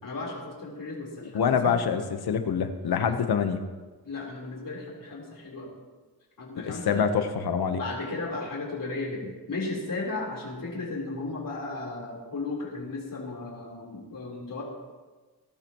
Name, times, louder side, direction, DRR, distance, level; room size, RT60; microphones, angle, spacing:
voice 1, 0.0-1.8 3.1-3.2 4.0-5.7 6.4-7.1 7.7-14.6, left 3 dB, 60° left, -3 dB, 4.1 m, -35 dB
voice 2, 1.3-3.6 6.7-7.8, left 6 dB, 85° left, 8 dB, 1.1 m, -25 dB
20.5 x 12.0 x 3.1 m, 1.3 s
cardioid pair, 60°, 37 cm